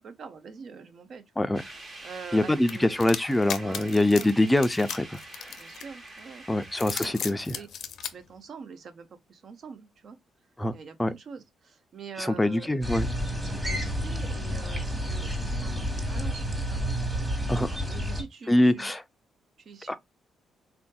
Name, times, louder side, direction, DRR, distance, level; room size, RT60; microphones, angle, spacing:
voice 1, 0.0-1.5 2.0-3.2 3.6-4.3 5.5-6.4 6.9-7.3 7.5-7.7 8.0-10.2 10.7-13.1 13.4-16.8 17.9-18.9 19.6-20.0, right 5 dB, 55° right, 0.6 m, -45 dB
sound 1, 1.5-8.2, right 2 dB, 35° right, 1.1 m, -46 dB
voice 2, 2.3-5.5 6.5-7.6 10.6-10.7 11.0-11.1 12.2-13.1 17.5-17.8 18.5-19.0 19.9-20.0, left 1 dB, 10° left, 0.4 m, -24 dB
sound 2, 2.7-6.1 6.7-8.1, left 8 dB, 70° left, 0.5 m, -36 dB
sound 3, 12.8-18.2, equal, 10° right, 1.2 m, -30 dB
3.5 x 2.5 x 2.2 m
cardioid pair, 90°, 0 cm